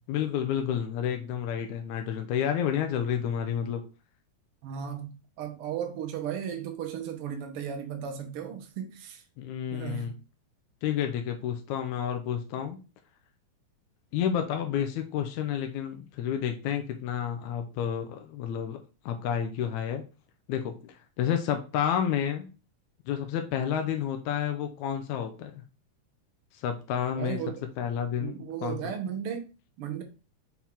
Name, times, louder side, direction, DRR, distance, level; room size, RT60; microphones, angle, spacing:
voice 1, 0.1-3.8 9.4-10.1 10.8-12.8 14.1-18.8 19.1-20.0 20.5-22.5 23.1-25.6 26.5-27.4 27.8-28.8, left 9 dB, 75° left, 2.0 m, -30 dB
voice 2, 4.6-9.2 9.7-10.2 27.2-27.7 28.2-29.5 29.8-30.0, right 8 dB, 75° right, 1.3 m, -35 dB
5.8 x 4.5 x 3.6 m
omnidirectional pair, 3.6 m